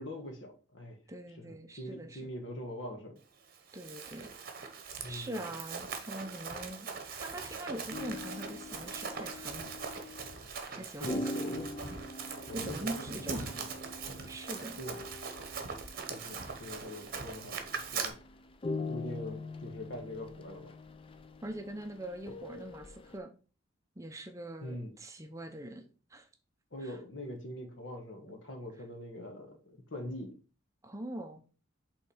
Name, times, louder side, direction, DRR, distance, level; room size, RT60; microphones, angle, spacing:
voice 1, 0.0-1.0 1.4-3.2 5.0-5.5 10.7-11.7 12.5-13.7 14.8-15.0 15.6-15.7 16.1-18.2 18.9-20.8 24.6-24.9 26.7-30.3, left 1 dB, 65° left, 4 dB, 1.5 m, -43 dB
voice 2, 1.1-2.3 3.7-4.3 5.1-6.9 7.2-9.7 10.7-11.6 12.5-13.5 14.3-14.8 21.4-23.3 24.0-25.8 26.1-26.3 26.8-27.0 30.8-31.4, right 1 dB, 15° right, 5 dB, 0.6 m, -42 dB
Run, 3.5-18.1, right 5 dB, 50° right, 0.9 m, -41 dB
sound 1, 7.9-23.2, left 2 dB, 25° left, 0.5 m, -43 dB
5.6 x 3.6 x 4.9 m, 0.37 s
head